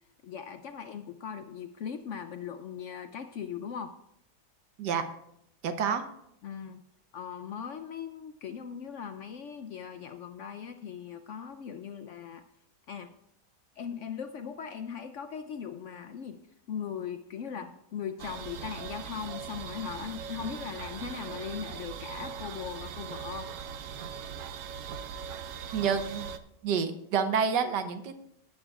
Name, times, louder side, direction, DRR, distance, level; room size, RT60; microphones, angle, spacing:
voice 1, 0.2-3.9 6.4-6.8 7.1-12.5 12.9-13.2 13.8-16.4 16.7-23.5, left 7 dB, 70° left, 8 dB, 0.7 m, -39 dB
voice 2, 5.6-6.0 25.7-26.3 26.6-28.2, right 6 dB, 90° right, 8 dB, 1.5 m, -28 dB
sound 1, 18.2-26.4, right 7 dB, 65° right, 0.9 m, -40 dB
18.0 x 8.9 x 2.4 m, 0.77 s
omnidirectional pair, 1.8 m